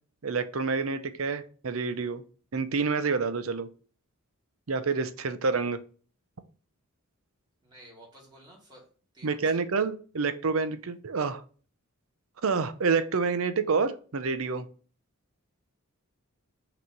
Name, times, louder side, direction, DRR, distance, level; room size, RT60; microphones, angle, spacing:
voice 1, 0.2-2.2 2.5-3.7 4.7-5.8 9.2-11.4 12.4-14.7, right 4 dB, 70° right, 12 dB, 0.6 m, -28 dB
voice 2, 7.6-8.9 9.1-9.6, right 1 dB, 20° right, -3 dB, 2.2 m, -52 dB
6.0 x 3.0 x 5.3 m, 0.40 s
head